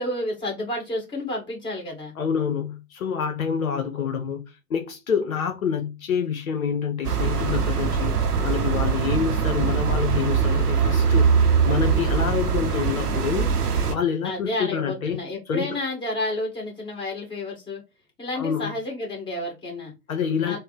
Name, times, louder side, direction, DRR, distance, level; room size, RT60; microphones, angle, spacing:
voice 1, 0.0-2.1 14.2-17.8 18.2-19.9 20.4-20.6, left 1 dB, 10° left, 1.5 m, -30 dB
voice 2, 2.2-4.4 4.7-8.1 8.4-13.5 13.9-15.2 15.5-15.8 18.4-18.7 20.1-20.6, left 7 dB, 65° left, 0.7 m, -27 dB
sound 1, 7.0-13.9, right 6 dB, 85° right, 0.7 m, -22 dB
3.5 x 2.1 x 3.9 m
figure-of-eight pair, 105°, 45 cm